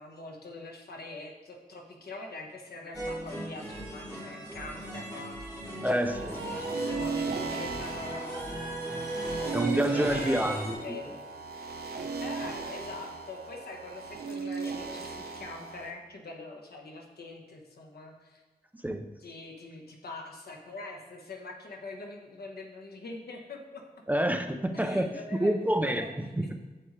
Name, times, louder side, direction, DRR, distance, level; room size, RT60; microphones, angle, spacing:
voice 1, 0.0-8.8 9.2-11.2 12.2-18.4 19.2-23.8 24.7-25.5 25.8-26.1 26.4-26.5, left 2 dB, 70° left, 1 dB, 1.3 m, -44 dB
sound 1, 2.9-10.7, right 1 dB, 20° left, 3.0 m, -37 dB
voice 2, 5.8-6.4 9.5-11.0 18.8-19.0 24.1-26.5, equal, 10° right, 6 dB, 0.5 m, -28 dB
sound 2, 6.1-15.9, right 4 dB, 75° right, 1.0 m, -36 dB
8.8 x 7.8 x 3.3 m, 1.2 s
wide cardioid pair, 125°, 17 cm